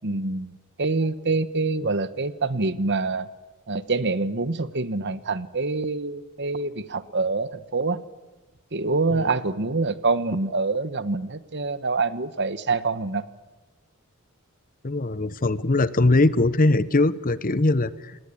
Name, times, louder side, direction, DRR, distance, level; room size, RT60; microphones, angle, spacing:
voice 1, 0.0-0.5 0.8-3.3 3.7-8.0 8.7-13.2, right 3 dB, 50° right, 14 dB, 1.2 m, -26 dB
voice 2, 14.8-18.2, left 2 dB, 40° left, 16 dB, 0.9 m, -21 dB
28.5 x 19.0 x 9.9 m, 1.2 s
head